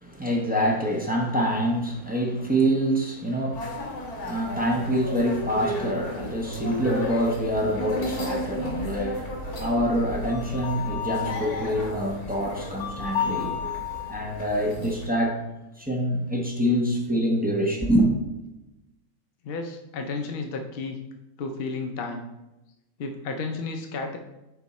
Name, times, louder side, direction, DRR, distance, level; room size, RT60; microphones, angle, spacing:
voice 1, 0.0-15.4 15.8-18.1, equal, 10° right, -2 dB, 0.7 m, -26 dB
sound 1, 3.5-15.1, left 3 dB, 80° left, 2.4 m, -33 dB
voice 2, 19.4-21.0 21.4-22.3 23.0-24.2, left 3 dB, 60° left, 4 dB, 0.6 m, -32 dB
6.9 x 4.5 x 4.1 m, 0.98 s
omnidirectional pair, 1.6 m